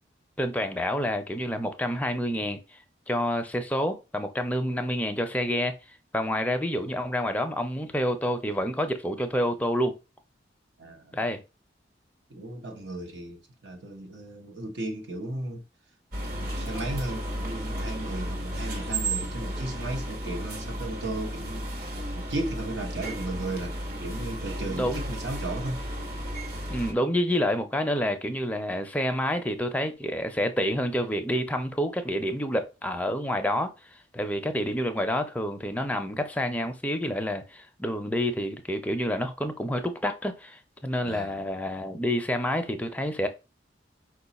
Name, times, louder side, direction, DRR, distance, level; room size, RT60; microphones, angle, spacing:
voice 1, 0.4-2.8 3.1-5.7 6.1-9.9 11.1-11.4 24.7-25.0 26.7-33.7 34.1-43.3, equal, 10° left, 0.5 m, -28 dB
voice 2, 10.8-11.2 12.3-15.6 16.3-21.7 22.1-25.8 41.0-41.4, right 2 dB, 80° right, 0.9 m, -35 dB
sound 1, 16.1-26.9, right 1 dB, 55° right, 1.0 m, -33 dB
4.8 x 2.3 x 4.0 m
head